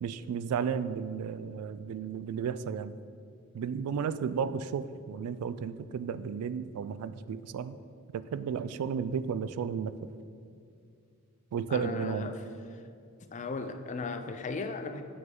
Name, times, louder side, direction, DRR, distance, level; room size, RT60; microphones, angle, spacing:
voice 1, 0.0-3.0 3.5-7.8 8.1-9.9 11.5-12.3, right 7 dB, 90° right, 16 dB, 0.3 m, -33 dB
voice 2, 11.7-12.4 12.7-12.8 13.3-15.0, left 3 dB, 35° left, 8 dB, 0.4 m, -36 dB
7.2 x 6.3 x 3.7 m, 2.4 s
head